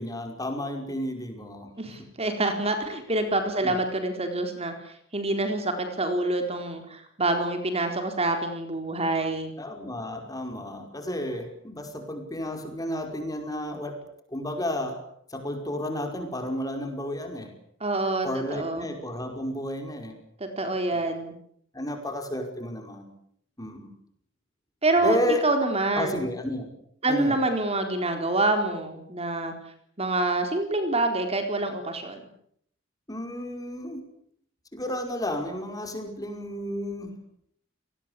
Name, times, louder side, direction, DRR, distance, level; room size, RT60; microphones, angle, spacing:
voice 1, 0.0-1.7 2.0-2.1 3.6-3.7 9.6-14.0 14.3-15.0 15.3-17.5 18.2-20.2 20.9-21.0 21.7-23.1 23.6-23.9 25.0-25.4 26.0-26.7 27.1-27.4 33.1-34.0 34.7-37.2, left 1 dB, 20° left, 5 dB, 5.5 m, -32 dB
voice 2, 1.8-4.7 5.1-9.5 17.8-18.9 20.4-21.3 24.8-25.2 25.4-26.3 27.0-29.5 30.0-32.2, right 2 dB, 30° right, 6 dB, 4.1 m, -26 dB
28.5 x 20.0 x 8.5 m, 0.68 s
head